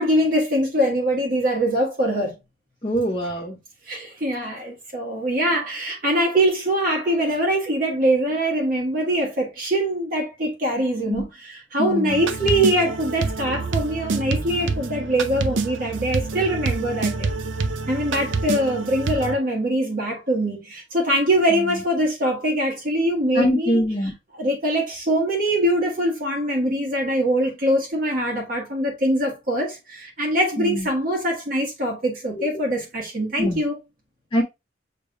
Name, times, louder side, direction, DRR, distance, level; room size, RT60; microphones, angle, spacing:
voice 1, 0.0-2.3 3.9-17.3 17.9-23.8 24.3-33.8, right 1 dB, 50° right, 1.3 m, -23 dB
voice 2, 2.8-3.6 11.1-11.2 11.8-12.2 23.3-24.1 30.6-30.9 33.4-33.6 34.3-34.4, equal, 30° left, 0.7 m, -23 dB
sound 1, 12.1-19.4, right 4 dB, 90° right, 0.5 m, -27 dB
6.7 x 3.3 x 2.2 m
head